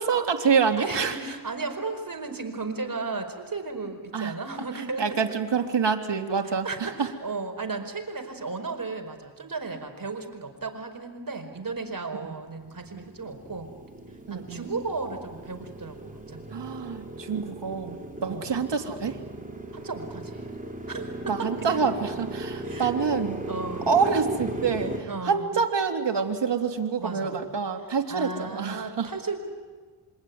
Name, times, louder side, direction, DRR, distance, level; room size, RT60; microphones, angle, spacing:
voice 1, 0.0-1.2 4.1-4.3 4.7-7.1 12.2-12.3 14.3-14.7 16.5-18.0 18.2-19.2 21.3-23.4 23.9-29.1, right 5 dB, 55° right, 4 dB, 3.1 m, -26 dB
voice 2, 0.8-5.3 6.6-13.7 14.3-16.7 18.2-18.6 19.7-20.5 20.9-21.8 22.6-22.9 23.5-24.0 25.1-25.6 27.0-27.4 28.1-29.4, right 3 dB, 40° right, 6 dB, 4.8 m, -35 dB
Motorcycle, 12.3-25.0, right 1 dB, 15° right, 4.9 m, -37 dB
26.5 x 23.5 x 9.6 m, 1.5 s
cardioid pair, 55°, 50 cm